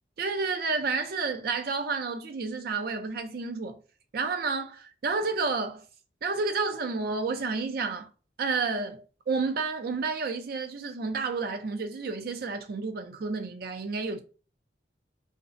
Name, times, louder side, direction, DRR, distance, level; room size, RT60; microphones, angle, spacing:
voice 1, 0.2-3.8 4.1-5.9 6.2-8.1 8.4-14.2, right 4 dB, 55° right, 0.4 m, -30 dB
2.6 x 2.0 x 2.4 m
head